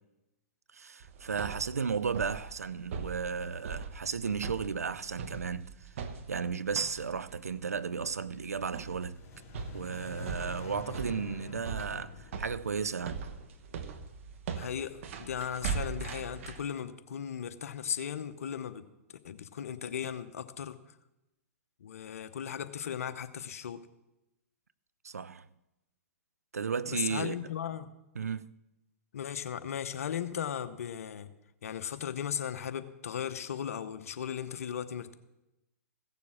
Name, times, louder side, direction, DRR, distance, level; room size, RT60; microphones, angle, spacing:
voice 1, 0.7-5.7 6.3-9.2 9.7-13.2 25.0-25.5 26.5-27.4 28.2-28.5, right 6 dB, 90° right, 0.5 m, -34 dB
sound 1, 1.0-16.6, right 6 dB, 60° right, 1.2 m, -41 dB
sound 2, 9.0-14.1, left 7 dB, 35° left, 2.7 m, -48 dB
voice 2, 14.6-18.8 19.2-20.8 21.8-23.9 26.9-27.9 29.1-31.3 31.6-35.1, left 8 dB, 70° left, 0.9 m, -37 dB
15.5 x 6.9 x 6.4 m
hypercardioid pair, 115°, 8 cm